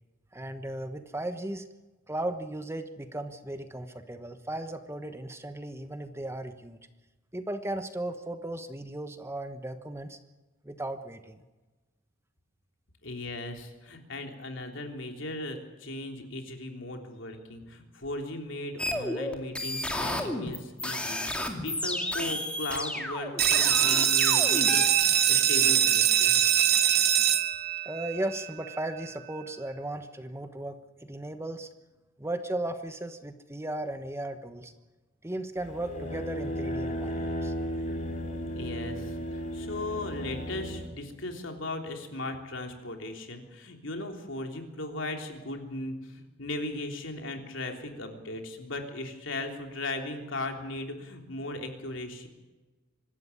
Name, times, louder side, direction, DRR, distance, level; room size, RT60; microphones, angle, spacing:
voice 1, 0.3-1.6 2.1-6.8 7.3-10.2 10.6-11.4 27.8-31.7 32.2-34.7 35.2-37.5, right 1 dB, 15° right, 9 dB, 1.1 m, -36 dB
voice 2, 13.0-26.4 38.5-52.3, left 2 dB, 65° left, 4 dB, 3.5 m, -37 dB
sound 1, 18.8-24.9, left 1 dB, 5° left, 2.6 m, -32 dB
sound 2, 23.4-28.8, right 10 dB, 55° right, 1.5 m, -23 dB
sound 3, 35.6-40.9, equal, 35° left, 4.3 m, -34 dB
25.0 x 13.0 x 9.8 m, 1.2 s
head